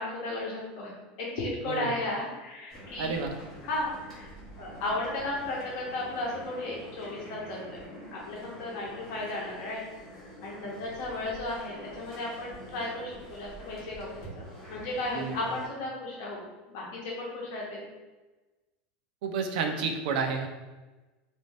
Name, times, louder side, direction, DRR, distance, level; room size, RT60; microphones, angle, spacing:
voice 1, 0.0-3.1 3.6-4.3 4.6-7.8 8.1-9.8 10.1-17.9, left 2 dB, 45° left, -4 dB, 1.0 m, -35 dB
sound 1, 2.7-15.7, equal, 5° left, 1.3 m, -47 dB
voice 2, 3.0-3.3 15.1-15.4 19.2-20.5, right 5 dB, 65° right, 4 dB, 0.6 m, -30 dB
4.1 x 2.7 x 3.4 m, 1.2 s
supercardioid pair, 175°, 5 cm